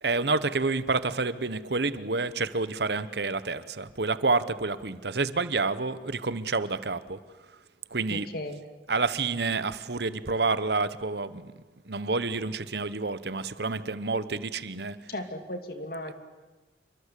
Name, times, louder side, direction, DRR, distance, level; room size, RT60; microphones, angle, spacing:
voice 1, 0.0-7.2 7.5-7.6 7.9-8.3 8.9-15.1, right 3 dB, 70° right, 15 dB, 1.1 m, -29 dB
voice 2, 8.1-8.6 15.1-16.1, left 1 dB, 60° left, 7 dB, 2.8 m, -36 dB
28.0 x 24.5 x 8.4 m, 1.2 s
head